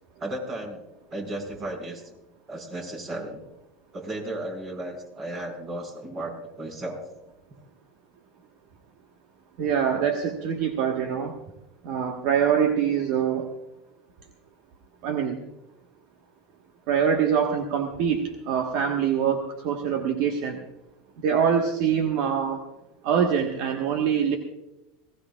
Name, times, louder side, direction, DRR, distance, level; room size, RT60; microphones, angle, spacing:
voice 1, 0.2-0.8 1.1-2.1 2.5-3.4 3.9-7.0, right 1 dB, 35° right, 3 dB, 5.5 m, -34 dB
voice 2, 9.6-11.3 11.8-13.5 15.0-15.4 16.9-20.6 21.2-22.6 23.0-24.4, right 7 dB, 65° right, 4 dB, 1.4 m, -24 dB
20.5 x 18.0 x 2.4 m, 0.95 s
hypercardioid pair, 90°, 0 cm